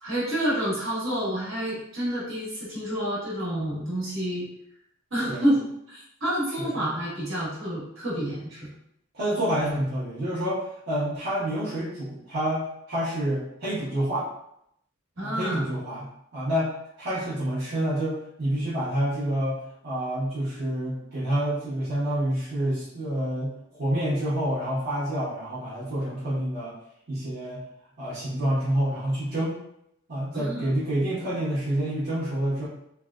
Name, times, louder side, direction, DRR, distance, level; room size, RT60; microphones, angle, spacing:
voice 1, 0.0-4.4 5.1-8.7 15.2-15.7 30.3-30.7, equal, 75° right, -7 dB, 1.5 m, -28 dB
voice 2, 6.6-6.9 9.1-14.3 15.2-26.7 27.1-27.6 28.0-29.6 30.1-32.7, right 1 dB, 50° right, -11 dB, 0.9 m, -28 dB
3.2 x 2.2 x 2.4 m, 0.75 s
head